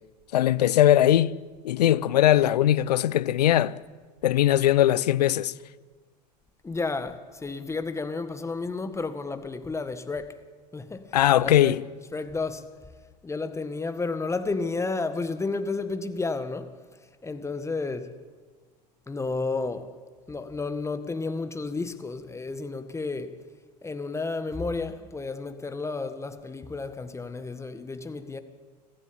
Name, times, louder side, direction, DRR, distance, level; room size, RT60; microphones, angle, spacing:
voice 1, 0.3-1.3 1.6-3.8 4.2-5.5 11.1-11.8, left 12 dB, 70° left, 0.8 m, -20 dB
voice 2, 6.6-10.4 10.7-11.7 12.1-12.7 13.2-16.7 17.2-18.1 19.1-19.9 20.3-23.4 23.8-28.4, left 3 dB, 15° left, 1.7 m, -32 dB
24.5 x 14.5 x 8.8 m
hypercardioid pair, 85°, 21 cm